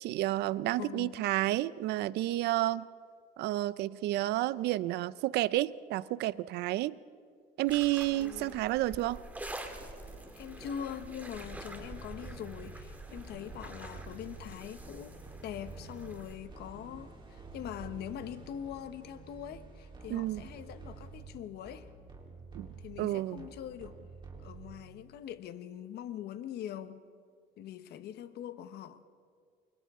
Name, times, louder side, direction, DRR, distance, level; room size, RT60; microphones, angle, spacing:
voice 1, 0.0-2.9 3.4-7.0 7.6-9.2 20.1-20.4 22.5-22.7 23.0-23.5, right 16 dB, 80° right, 18 dB, 0.5 m, -30 dB
voice 2, 0.8-1.2 8.2-8.6 10.4-15.1 15.4-21.9 22.8-23.9 24.4-27.0 27.6-29.0, left 10 dB, 70° left, 11 dB, 1.1 m, -43 dB
sound 1, 7.7-16.4, right 1 dB, 10° right, 2.2 m, -47 dB
sound 2, 9.6-25.1, right 4 dB, 30° right, 3.6 m, -50 dB
29.5 x 24.0 x 3.7 m, 2.1 s
cardioid pair, 110°, 17 cm